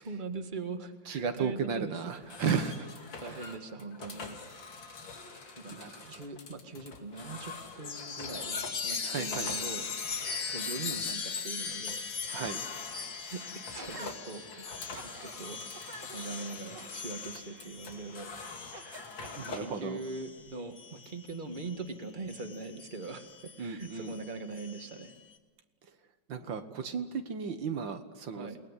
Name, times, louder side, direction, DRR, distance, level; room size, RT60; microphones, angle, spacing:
voice 1, 0.0-2.2 3.2-4.4 5.6-5.8 6.1-9.9 10.5-12.1 13.3-18.3 19.4-25.1 28.3-28.6, right 3 dB, 25° right, 7 dB, 1.8 m, -42 dB
voice 2, 1.1-2.9 3.3-3.4 5.7-6.0 9.0-9.6 12.3-12.6 19.4-20.0 23.6-24.2 26.3-28.5, right 6 dB, 85° right, 8 dB, 2.2 m, -34 dB
sound 1, 2.1-19.8, left 4 dB, 90° left, 3.1 m, -46 dB
Chime, 7.8-21.8 22.3-25.1, left 5 dB, 55° left, 2.1 m, -40 dB
Gasp, 13.8-14.1 14.7-15.4 15.7-18.2 18.7-19.8 20.4-20.5, right 2 dB, 40° right, 2.6 m, -50 dB
28.5 x 19.5 x 9.8 m, 1.3 s
omnidirectional pair, 2.0 m